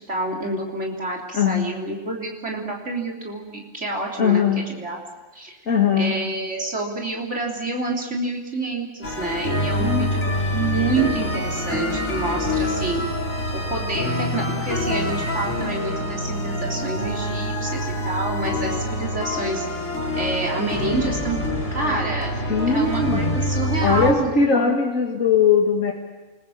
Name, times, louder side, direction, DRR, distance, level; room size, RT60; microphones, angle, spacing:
voice 1, 0.1-5.0 5.3-5.6 5.9-13.0 13.5-19.7 20.2-21.4 21.7-22.3 22.7-24.7, right 2 dB, 60° right, -2 dB, 3.8 m, -28 dB
voice 2, 1.3-1.7 4.2-4.6 5.7-6.2 9.8-10.1 22.5-23.3 23.8-25.9, left 6 dB, 85° left, 0 dB, 2.4 m, -20 dB
sound 1, 9.0-24.1, left 1 dB, 65° left, 4.0 m, -26 dB
28.0 x 21.0 x 7.2 m, 1.2 s
omnidirectional pair, 1.3 m